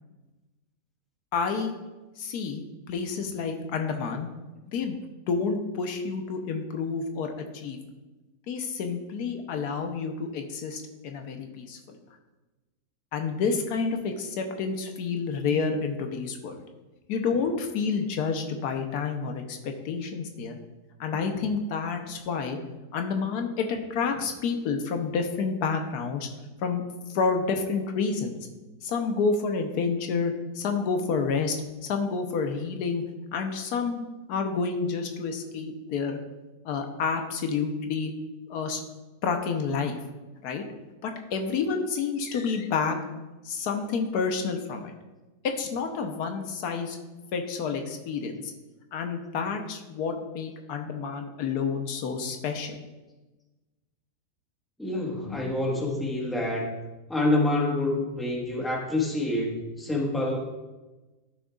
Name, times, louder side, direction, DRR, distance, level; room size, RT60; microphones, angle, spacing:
voice 1, 1.3-1.8 2.2-4.3 4.7-5.0 5.3-7.8 8.5-12.0 13.1-16.6 17.1-20.6 21.0-22.6 22.9-26.3 26.6-26.8 27.1-28.4 28.8-31.6 31.8-33.0 33.3-34.0 34.3-36.2 36.6-38.1 38.5-38.8 39.2-40.0 40.4-40.6 41.0-43.0 43.4-44.9 45.4-47.0 47.3-48.5 48.9-52.8 55.3-55.5, left 5 dB, 90° left, 5 dB, 1.3 m, -29 dB
voice 2, 54.8-56.8 57.1-60.4, left 2 dB, ahead, -1 dB, 1.0 m, -27 dB
12.0 x 6.3 x 2.3 m, 1.1 s
omnidirectional pair, 1.6 m